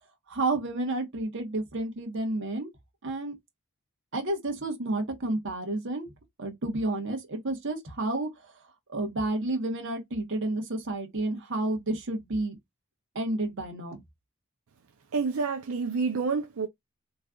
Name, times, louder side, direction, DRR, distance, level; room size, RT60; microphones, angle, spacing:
voice 1, 0.3-2.7 3.0-3.3 4.1-6.1 6.4-8.3 8.9-12.6 13.1-14.0, right 2 dB, 60° right, 1.2 m, -30 dB
voice 2, 15.1-16.7, right 4 dB, 80° right, 0.5 m, -28 dB
3.7 x 3.1 x 2.3 m
head